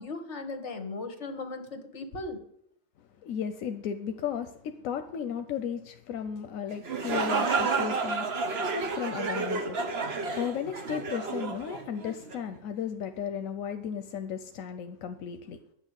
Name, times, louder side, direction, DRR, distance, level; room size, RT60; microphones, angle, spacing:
voice 1, 0.0-2.4, left 3 dB, 60° left, 7 dB, 1.7 m, -37 dB
voice 2, 3.0-15.6, left 8 dB, 85° left, 8 dB, 1.1 m, -35 dB
sound 1, 6.7-12.4, right 4 dB, 50° right, 1.3 m, -31 dB
9.8 x 6.5 x 8.1 m, 0.72 s
omnidirectional pair, 1.4 m